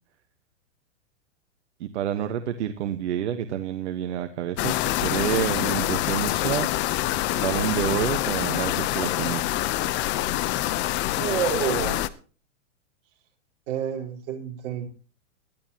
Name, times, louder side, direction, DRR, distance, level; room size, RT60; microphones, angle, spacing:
voice 1, 1.8-6.7 7.3-9.4, right 10 dB, 65° right, 8 dB, 1.4 m, -28 dB
sound 1, 4.6-12.1, left 15 dB, 30° left, 0.8 m, -26 dB
voice 2, 11.2-12.0 13.7-14.9, right 9 dB, 45° right, 1 dB, 4.6 m, -28 dB
21.0 x 13.5 x 2.9 m, 0.38 s
hypercardioid pair, 135°, 37 cm